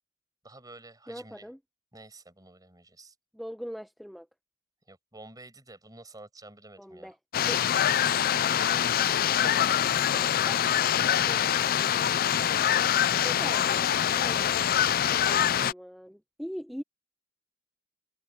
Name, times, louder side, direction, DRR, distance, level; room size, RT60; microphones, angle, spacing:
voice 1, 0.4-1.5 1.9-3.1 4.9-7.1 12.0-13.8, right 2 dB, 20° right, 5.9 m, -51 dB
voice 2, 1.1-1.6 3.3-4.3 6.8-7.8 9.4-9.7 10.1-10.6 11.3-11.5 13.2-16.8, equal, ahead, 0.9 m, -42 dB
sound 1, 7.3-15.7, left 10 dB, 45° left, 0.4 m, -24 dB
head